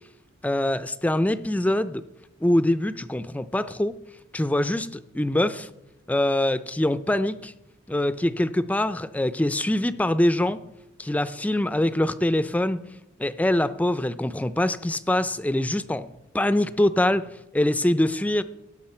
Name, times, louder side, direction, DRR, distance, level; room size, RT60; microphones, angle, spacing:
voice 1, 0.4-2.0 2.4-4.0 4.3-5.7 6.1-7.5 7.9-10.6 11.0-12.8 13.2-16.1 16.3-18.4, left 1 dB, 5° left, 13 dB, 0.4 m, -24 dB
18.0 x 6.2 x 4.3 m, 0.91 s
head